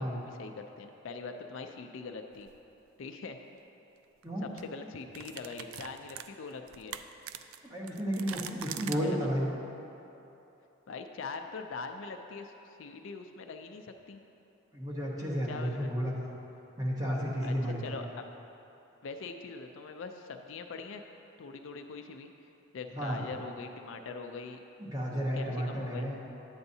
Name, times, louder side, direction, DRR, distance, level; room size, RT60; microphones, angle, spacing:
voice 1, 0.0-2.5 3.0-3.4 4.4-7.0 8.9-9.3 10.9-14.2 15.5-15.9 17.4-18.3 19.0-21.0 21.4-22.3 22.7-24.6 25.3-26.1, left 4 dB, 65° left, 5 dB, 0.4 m, -42 dB
sound 1, 2.4-2.6 4.0-4.2 4.6-4.7 5.1-9.0, right 10 dB, 80° right, 0.3 m, -43 dB
voice 2, 7.7-9.5 14.7-16.3 16.8-17.8 22.9-23.2 24.8-26.2, equal, 15° right, -4 dB, 1.0 m, -32 dB
9.6 x 7.8 x 2.7 m, 3.0 s
head